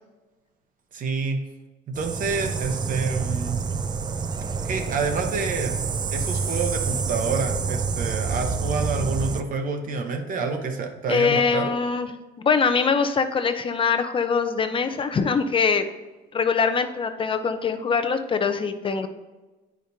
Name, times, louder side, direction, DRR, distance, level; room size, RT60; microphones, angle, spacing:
voice 1, 0.9-1.4 2.0-3.6 4.6-5.7 6.1-11.8, right 4 dB, 55° right, 5 dB, 1.0 m, -28 dB
sound 1, 1.9-9.4, right 5 dB, 25° right, 0.4 m, -28 dB
voice 2, 11.1-12.1 12.4-15.8 16.3-19.1, left 5 dB, 30° left, 9 dB, 0.5 m, -23 dB
9.1 x 5.0 x 2.7 m, 1.2 s
cardioid pair, 110°, 17 cm